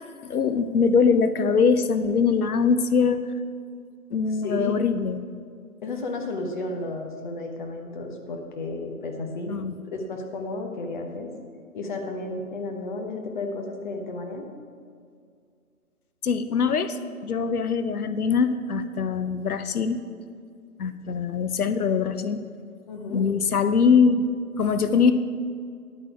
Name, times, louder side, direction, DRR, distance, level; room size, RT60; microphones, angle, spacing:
voice 1, 0.2-3.2 4.1-5.2 9.5-9.7 16.2-20.0 20.8-22.4 23.1-24.2 24.6-25.1, left 5 dB, 80° left, 11 dB, 0.7 m, -22 dB
voice 2, 4.3-4.9 5.8-9.6 9.9-11.3 11.7-14.5 22.9-23.2, left 2 dB, 35° left, 3 dB, 1.1 m, -32 dB
10.0 x 8.6 x 4.7 m, 2.3 s
figure-of-eight pair, 145°, 44 cm